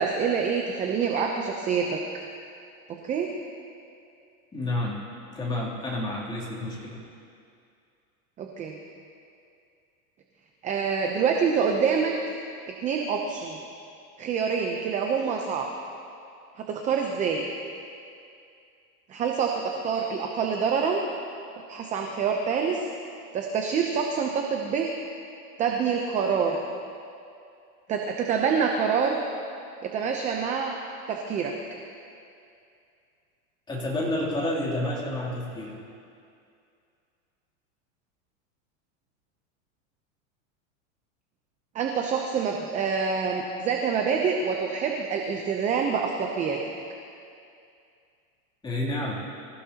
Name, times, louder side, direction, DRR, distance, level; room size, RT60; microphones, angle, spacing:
voice 1, 0.0-2.0 3.0-3.3 8.4-8.8 10.6-12.4 12.8-13.6 14.2-15.7 16.6-17.4 19.1-21.0 21.7-22.9 23.3-24.9 25.6-26.6 27.9-29.2 29.9-30.8 31.1-31.5 41.7-46.6, right 6 dB, 15° right, 2 dB, 0.7 m, -26 dB
voice 2, 4.5-5.0 5.3-7.0 33.7-35.8 48.6-49.2, left 1 dB, 10° left, -6 dB, 3.0 m, -29 dB
25.0 x 16.0 x 2.9 m, 2.5 s
supercardioid pair, 155°, 42 cm